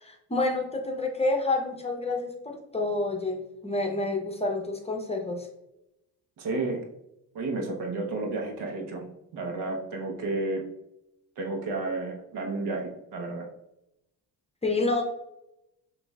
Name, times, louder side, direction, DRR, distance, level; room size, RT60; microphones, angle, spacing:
voice 1, 0.0-5.5 14.6-15.0, left 2 dB, 15° left, 2 dB, 0.7 m, -28 dB
voice 2, 6.4-6.8 7.3-9.1 9.3-10.6 11.4-13.5, right 2 dB, 75° right, 2 dB, 1.0 m, -31 dB
6.0 x 2.6 x 2.3 m, 0.86 s
supercardioid pair, 85°, 41 cm